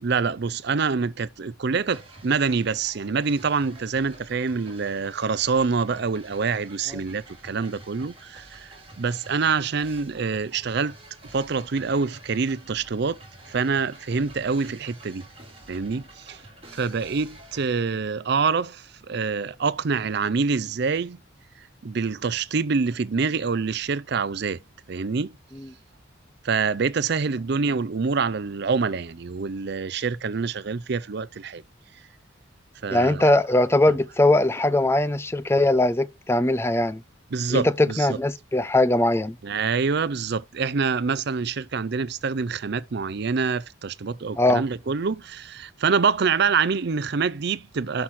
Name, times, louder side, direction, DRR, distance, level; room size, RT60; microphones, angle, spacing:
voice 1, 0.0-10.9 11.3-13.2 13.5-15.3 15.7-16.4 16.7-21.2 21.8-24.6 24.9-25.3 26.4-31.6 32.8-33.4 33.9-34.0 37.3-38.2 39.4-48.0, right 5 dB, 55° right, 0.5 m, -26 dB
sound 1, 1.9-17.7, right 2 dB, 30° right, 2.6 m, -48 dB
voice 2, 32.9-37.0 37.5-39.4 44.4-44.6, left 1 dB, 10° left, 0.4 m, -20 dB
5.9 x 5.7 x 6.3 m
head